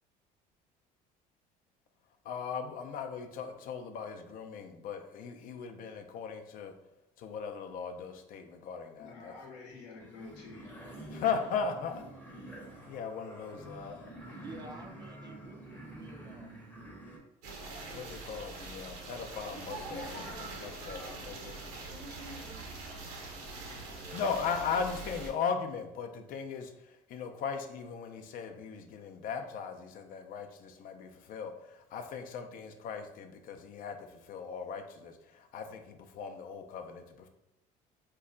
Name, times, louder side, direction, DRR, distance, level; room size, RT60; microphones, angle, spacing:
voice 1, 2.2-6.7 7.2-9.3 11.1-12.0 12.8-14.4 17.9-21.6 23.9-37.3, left 6 dB, 60° left, 0.4 m, -38 dB
voice 2, 9.0-10.7 19.8-21.6, left 3 dB, 85° left, 0.8 m, -50 dB
sound 1, 10.0-17.2, right 1 dB, 10° left, 0.7 m, -48 dB
voice 3, 14.3-16.7, right 3 dB, 25° right, 0.4 m, -50 dB
sound 2, 17.4-25.3, right 3 dB, 85° right, 0.8 m, -43 dB
2.3 x 2.1 x 3.7 m
supercardioid pair, 95°, 17 cm